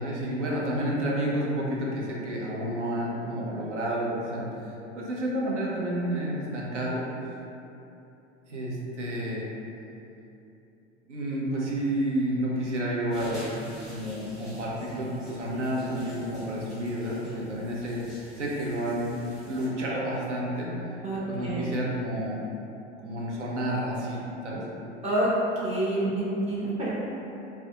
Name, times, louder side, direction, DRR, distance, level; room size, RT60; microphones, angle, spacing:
voice 1, 0.0-7.0 8.5-9.5 11.1-13.5 13.9-19.2 19.5-20.7 21.3-22.4 23.0-24.6, right 1 dB, 80° right, -4 dB, 0.6 m, -30 dB
sound 1, 13.1-19.7, equal, ahead, 0.8 m, -47 dB
voice 2, 21.0-21.7 25.0-25.3 25.6-26.9, right 1 dB, 20° right, -8 dB, 0.5 m, -28 dB
2.4 x 2.2 x 2.7 m, 2.8 s
figure-of-eight pair, 80°, 35 cm